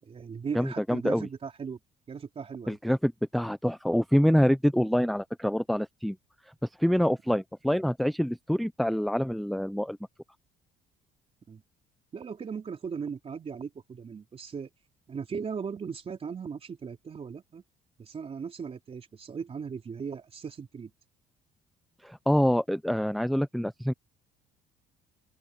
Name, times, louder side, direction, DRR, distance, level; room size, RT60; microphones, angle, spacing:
voice 1, 0.0-1.8 2.1-2.8 11.5-11.6 12.1-14.7 15.1-17.6 18.0-20.9, right 6 dB, 35° right, 4.1 m, -38 dB
voice 2, 0.5-1.3 2.7-6.2 6.8-10.0 22.0-23.9, equal, ahead, 0.6 m, -26 dB
open air
cardioid pair, 110°, 17 cm